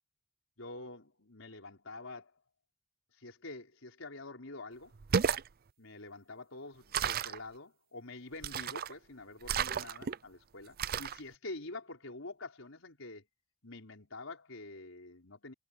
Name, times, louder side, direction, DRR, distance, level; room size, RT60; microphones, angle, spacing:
voice 1, 0.6-2.3 3.2-4.9 5.8-13.2 13.6-15.5, left 2 dB, 85° left, 4.4 m, -47 dB
sound 1, 5.0-5.5 6.9-7.4 8.4-8.9 9.4-10.2 10.8-11.2, right 7 dB, 50° right, 0.5 m, -32 dB
head